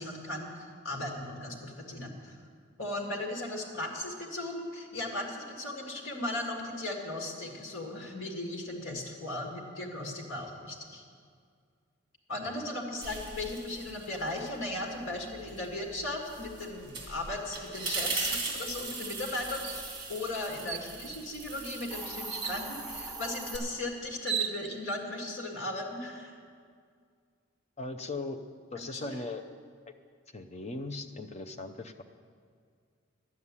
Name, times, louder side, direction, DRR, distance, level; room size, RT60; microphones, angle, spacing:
voice 1, 0.0-2.3 2.8-11.0 12.3-26.3 28.9-29.1, left 2 dB, 85° left, 1 dB, 2.1 m, -37 dB
sound 1, 13.0-14.6 14.9-23.6, right 3 dB, 25° right, 2.5 m, -39 dB
sound 2, 19.6-19.8 20.3-20.4 20.7-21.3 22.3-22.6 23.7-23.8 24.1-25.0, right 8 dB, 60° right, 0.6 m, -35 dB
Hiss, 21.8-23.6, right 2 dB, ahead, 2.0 m, -41 dB
voice 2, 27.8-28.4 28.7-29.4 30.3-32.0, left 2 dB, 30° left, 8 dB, 0.6 m, -39 dB
12.0 x 7.2 x 9.7 m, 2.1 s
head